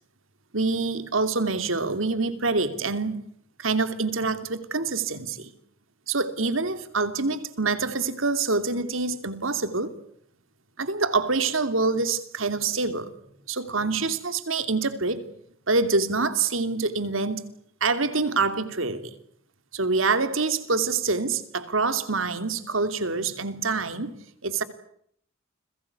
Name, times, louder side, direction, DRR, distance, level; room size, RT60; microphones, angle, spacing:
voice 1, 0.5-3.2 3.6-5.5 6.1-9.9 10.8-13.1 13.5-15.2 15.7-17.4 17.8-19.1 19.7-24.1 24.4-24.6, right 3 dB, 75° right, 11 dB, 2.9 m, -26 dB
30.0 x 22.0 x 8.4 m, 0.68 s
head